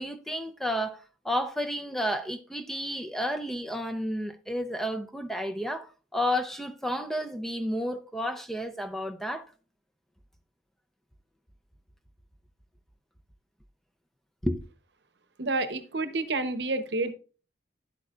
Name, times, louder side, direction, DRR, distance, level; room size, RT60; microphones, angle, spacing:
voice 1, 0.0-9.5 14.4-14.6, equal, ahead, 0.5 m, -31 dB
voice 2, 15.4-17.1, right 2 dB, 70° right, 0.8 m, -29 dB
10.5 x 8.0 x 2.4 m
head